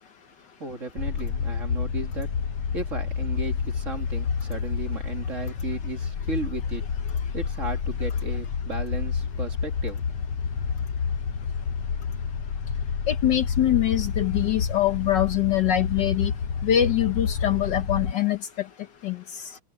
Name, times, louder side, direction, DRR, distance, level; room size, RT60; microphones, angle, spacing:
voice 1, 0.6-2.3 2.7-6.9 7.3-10.0, right 3 dB, 35° right, 2.4 m, -35 dB
sound 1, 1.0-18.1, left 6 dB, 85° left, 2.3 m, -29 dB
voice 2, 13.1-16.3 16.6-18.4 19.0-19.2, left 11 dB, 60° left, 1.4 m, -23 dB
omnidirectional pair, 2.3 m